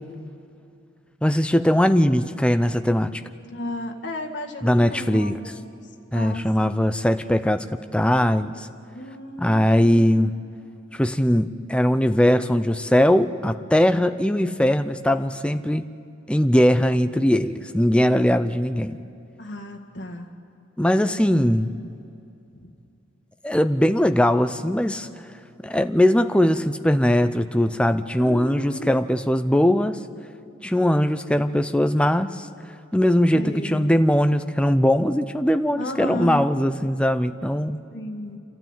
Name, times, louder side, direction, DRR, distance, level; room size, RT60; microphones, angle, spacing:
voice 1, 1.2-3.2 4.6-5.4 6.1-7.7 7.9-8.7 9.4-10.3 10.9-15.8 16.3-19.0 20.8-21.7 23.4-25.1 25.6-30.0 30.6-32.5 32.9-37.8, equal, 5° left, 9 dB, 0.5 m, -20 dB
voice 2, 3.4-5.7 6.1-6.8 8.9-10.0 19.4-20.3 22.6-22.7 28.1-28.9 33.3-33.9 35.8-36.5 37.9-38.4, left 1 dB, 65° left, 0 dB, 1.9 m, -33 dB
28.5 x 12.5 x 9.0 m, 2.6 s
head